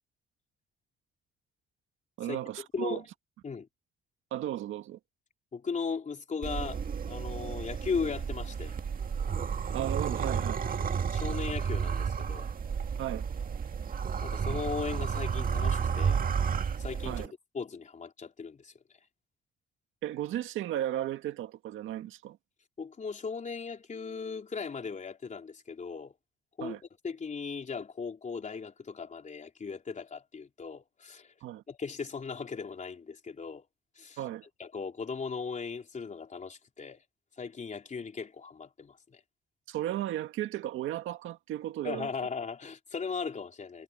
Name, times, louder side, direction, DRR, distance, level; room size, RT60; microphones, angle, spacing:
voice 1, 2.2-3.0 4.3-5.0 9.7-10.6 13.0-13.2 17.0-17.3 20.0-22.4 26.6-26.8 31.4-31.6 34.2-34.5 39.7-42.1, right 13 dB, 85° right, 1.9 m, -35 dB
voice 2, 5.5-8.8 10.8-12.5 14.2-16.2 16.8-18.7 22.8-26.1 26.6-26.8 27.0-31.3 31.7-33.7 34.0-34.2 34.6-37.0 37.4-39.2 41.8-43.8, left 5 dB, 40° left, 3.5 m, -37 dB
sound 1, 6.4-17.3, right 6 dB, 45° right, 2.0 m, -32 dB
cardioid pair, 90°, 20 cm